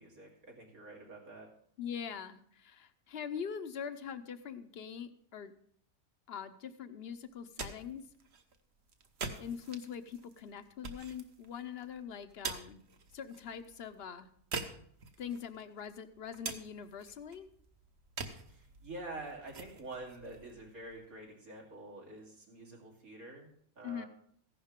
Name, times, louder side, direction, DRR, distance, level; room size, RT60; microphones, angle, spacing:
voice 1, 0.0-1.5 18.5-23.5 23.8-24.1, right 2 dB, 80° right, -1 dB, 3.3 m, -47 dB
voice 2, 1.8-5.5 6.3-8.0 9.4-12.8 13.1-14.3 15.2-17.5 23.8-24.1, left 7 dB, 55° left, 11 dB, 0.9 m, -43 dB
sound 1, 7.3-21.3, right 4 dB, 50° right, 1.2 m, -47 dB
15.0 x 11.0 x 3.7 m, 0.64 s
omnidirectional pair, 1.5 m